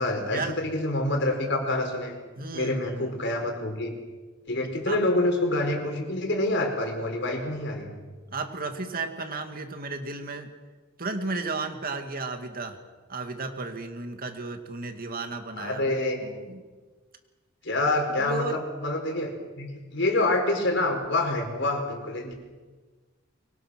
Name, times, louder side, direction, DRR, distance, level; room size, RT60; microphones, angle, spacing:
voice 1, 0.0-2.2 2.5-3.9 4.5-8.0 15.6-16.2 17.6-22.4, left 2 dB, 60° left, 3 dB, 4.6 m, -27 dB
voice 2, 2.4-3.2 4.9-5.0 8.3-10.5 11.0-12.8 13.1-16.6 18.2-18.6, right 3 dB, 45° right, 6 dB, 2.3 m, -34 dB
24.5 x 23.0 x 6.4 m, 1.3 s
head